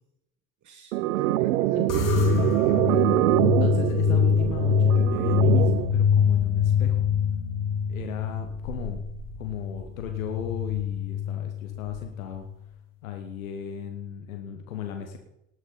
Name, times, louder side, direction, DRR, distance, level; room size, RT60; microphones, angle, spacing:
voice 1, 0.6-3.1, right 10 dB, 45° right, 7 dB, 1.4 m, -37 dB
sound 1, 0.9-5.9, right 16 dB, 75° right, 0.6 m, -24 dB
sound 2, 1.9-12.5, left 7 dB, 50° left, 3.0 m, -25 dB
voice 2, 3.6-7.1 7.9-9.0 9.4-12.5 13.0-15.2, left 9 dB, 80° left, 5 dB, 1.1 m, -36 dB
18.5 x 6.4 x 5.5 m, 0.86 s
figure-of-eight pair, 50°, 40 cm